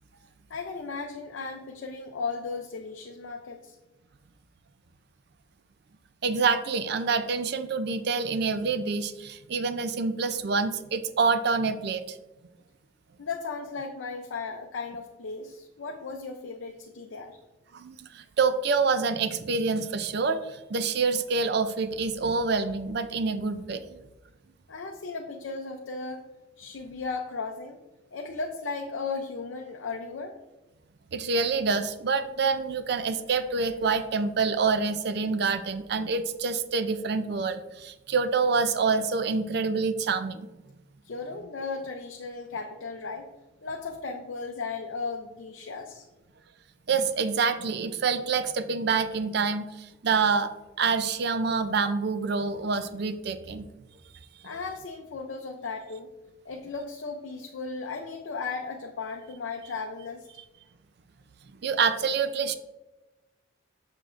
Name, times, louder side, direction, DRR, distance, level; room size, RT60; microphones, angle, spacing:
voice 1, 0.5-3.8 13.2-17.4 24.7-26.2 26.6-27.8 28.1-30.4 41.0-43.3 43.6-46.1 54.4-56.1 56.4-60.3, left 4 dB, 65° left, 2 dB, 0.5 m, -36 dB
voice 2, 6.2-12.2 17.7-24.0 31.1-40.5 46.9-53.7 61.6-62.5, right 4 dB, 55° right, 11 dB, 0.4 m, -27 dB
6.9 x 6.6 x 2.5 m, 1.1 s
head